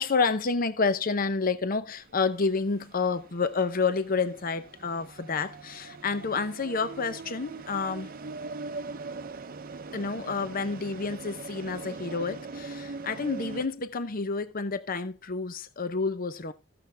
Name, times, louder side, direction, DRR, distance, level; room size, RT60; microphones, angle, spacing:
voice 1, 0.0-8.1 9.9-16.5, left 4 dB, 40° left, 0.7 m, -29 dB
sound 1, 2.0-13.7, right 3 dB, 45° right, 0.7 m, -41 dB
15.0 x 6.9 x 3.4 m
head